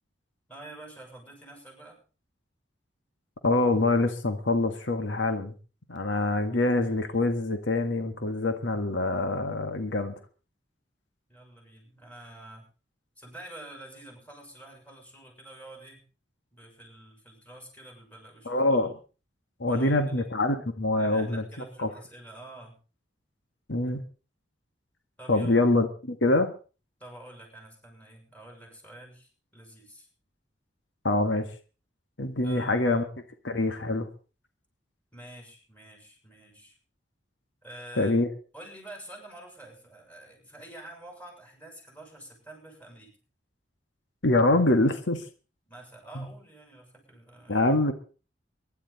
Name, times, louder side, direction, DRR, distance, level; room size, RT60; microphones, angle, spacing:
voice 1, 0.5-2.0 6.2-6.6 11.3-12.6 13.2-16.0 16.5-18.8 19.7-20.3 20.9-22.8 25.2-25.6 27.0-30.1 32.4-33.0 35.1-36.8 37.6-38.1 38.5-43.1 45.7-47.7, right 1 dB, 10° left, 1 dB, 6.9 m, -48 dB
voice 2, 3.4-5.5 5.9-10.1 18.5-18.9 19.6-21.4 21.8-21.9 23.7-24.0 25.3-26.5 31.0-31.5 32.2-33.1 33.4-34.1 38.0-38.3 44.2-45.2 46.2-46.3 47.5-47.9, left 2 dB, 85° left, 7 dB, 1.7 m, -25 dB
23.5 x 11.5 x 4.1 m, 0.37 s
head